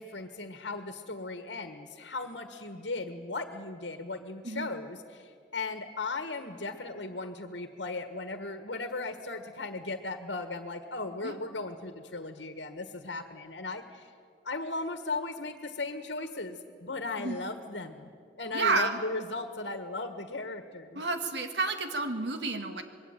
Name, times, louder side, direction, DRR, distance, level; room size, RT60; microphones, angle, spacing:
voice 1, 0.0-14.1 14.4-18.1 18.4-21.0, left 3 dB, 85° left, 8 dB, 1.7 m, -37 dB
voice 2, 18.5-19.0 20.9-22.8, right 3 dB, 75° right, 6 dB, 2.3 m, -30 dB
26.0 x 22.0 x 9.2 m, 2.2 s
head